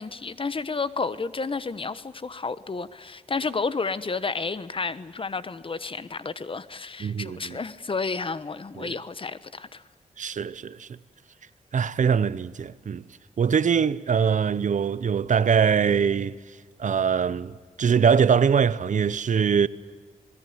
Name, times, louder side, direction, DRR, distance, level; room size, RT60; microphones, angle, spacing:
voice 1, 0.0-9.8, left 4 dB, 40° left, 1.3 m, -31 dB
voice 2, 7.0-7.6 8.8-8.9 10.2-10.9 11.7-13.0 13.4-16.3 16.8-19.7, right 7 dB, 65° right, 0.8 m, -23 dB
26.5 x 20.0 x 9.6 m
cardioid pair, 85°, 14 cm